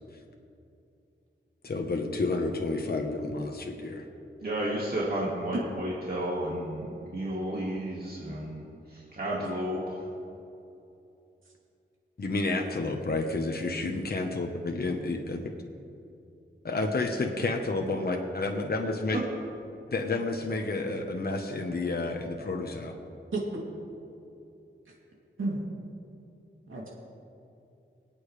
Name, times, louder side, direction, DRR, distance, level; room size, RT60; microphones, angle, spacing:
voice 1, 1.6-4.1 12.2-15.4 16.6-19.2 19.9-22.9, left 3 dB, 50° left, 2 dB, 1.1 m, -30 dB
voice 2, 4.4-10.1 19.1-19.2, right 1 dB, 50° right, -6 dB, 2.1 m, -32 dB
voice 3, 23.3-23.6 25.4-25.6 26.7-26.9, right 2 dB, 85° right, -4 dB, 2.9 m, -31 dB
26.0 x 8.8 x 3.3 m, 2.7 s
wide cardioid pair, 110°, 20 cm